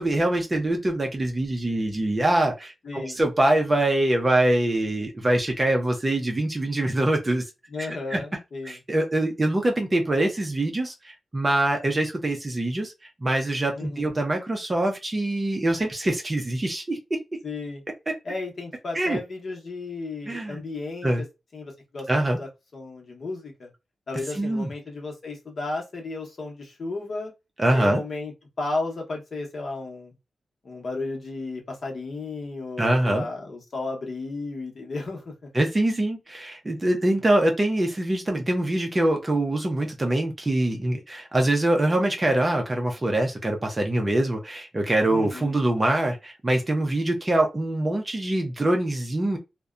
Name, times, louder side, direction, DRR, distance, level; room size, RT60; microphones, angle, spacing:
voice 1, 0.0-7.4 8.1-8.2 8.7-12.9 13.2-17.2 18.1-18.2 18.9-19.2 20.3-20.6 21.0-21.2 22.1-22.4 24.4-24.7 27.6-28.0 32.8-33.2 35.5-49.4, right 1 dB, 20° right, 0.5 m, -24 dB
voice 2, 2.8-3.2 7.7-8.8 13.7-14.1 17.4-17.8 18.2-21.3 21.5-22.1 22.3-23.7 24.1-27.3 27.7-28.3 28.6-30.1 30.6-35.5 45.1-45.6, left 3 dB, 45° left, 0.8 m, -34 dB
2.7 x 2.1 x 2.3 m
wide cardioid pair, 170°, 0 cm